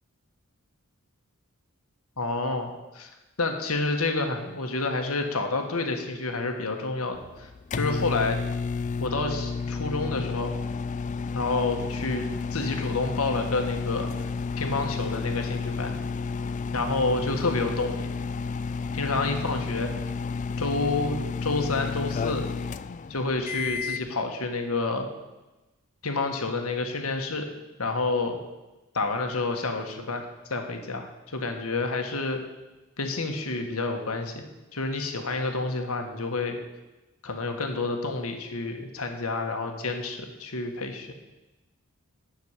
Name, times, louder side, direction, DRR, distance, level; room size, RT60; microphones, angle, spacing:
voice 1, 2.2-3.1 3.4-8.4 9.0-10.5 11.3-14.3 14.6-15.9 16.7-18.1 18.9-19.9 20.6-22.5 23.1-25.1 26.0-27.5 27.8-28.4 28.9-32.4 33.0-34.4 34.7-36.6 37.2-41.1, left 3 dB, 75° left, 4 dB, 1.6 m, -29 dB
sound 1, 7.1-24.1, left 4 dB, 35° left, 0.4 m, -31 dB
10.5 x 6.5 x 8.2 m, 1.1 s
head